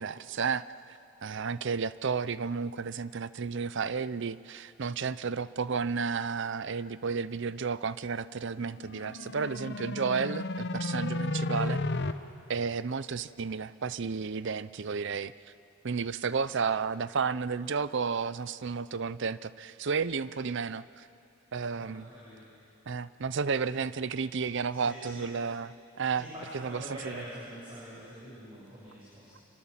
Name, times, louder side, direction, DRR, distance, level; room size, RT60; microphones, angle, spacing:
voice 1, 0.0-11.8 12.5-15.3 15.8-21.1 21.5-22.1 22.9-26.3 26.6-27.2, right 5 dB, 55° right, 16 dB, 0.6 m, -32 dB
sound 1, 8.8-12.1, left 2 dB, 55° left, 0.9 m, -33 dB
voice 2, 21.7-22.5 24.7-25.5 26.0-29.4, equal, 25° right, -9 dB, 7.9 m, -45 dB
27.5 x 25.0 x 7.4 m, 2.6 s
head